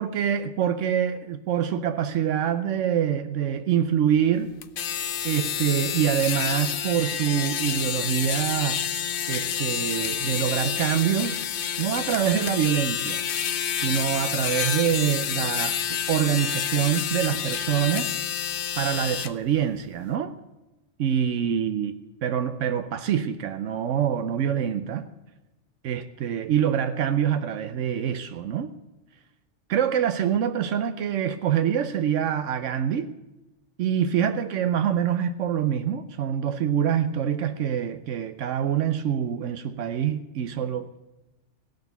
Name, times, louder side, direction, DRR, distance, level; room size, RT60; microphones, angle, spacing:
voice 1, 0.0-4.5 5.2-8.8 9.3-11.4 11.8-13.2 13.7-18.2 18.8-20.3 21.0-21.9 22.2-25.1 25.8-28.7 29.7-33.1 33.8-41.0, right 9 dB, 80° right, 1.0 m, -25 dB
sound 1, 4.6-19.3, left 8 dB, 55° left, 0.7 m, -29 dB
17.0 x 6.6 x 8.0 m
omnidirectional pair, 1.3 m